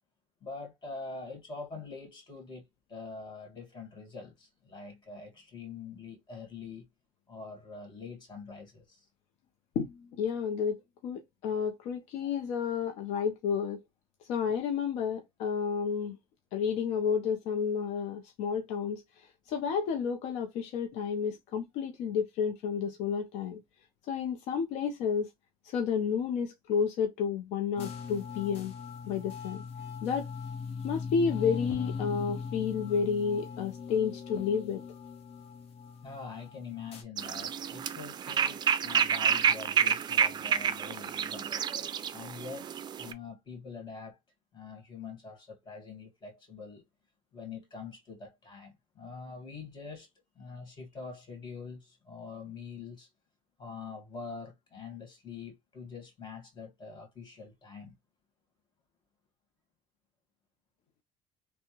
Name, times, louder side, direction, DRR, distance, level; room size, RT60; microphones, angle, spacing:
voice 1, 0.4-6.9 7.3-9.1 36.0-41.6 42.1-42.7 43.0-44.2 44.5-46.8 47.3-50.1 50.4-53.1 53.6-57.9, left 4 dB, 40° left, 1.7 m, -44 dB
voice 2, 9.8-13.8 14.2-16.2 16.5-23.6 24.1-25.3 25.6-28.7 29.1-29.6 30.0-30.3 30.8-34.8, left 6 dB, 80° left, 0.5 m, -31 dB
sound 1, 27.8-37.0, left 5 dB, 60° left, 0.9 m, -40 dB
sound 2, 37.2-43.1, right 8 dB, 40° right, 0.4 m, -29 dB
3.3 x 2.1 x 2.9 m
cardioid pair, 95°, 11 cm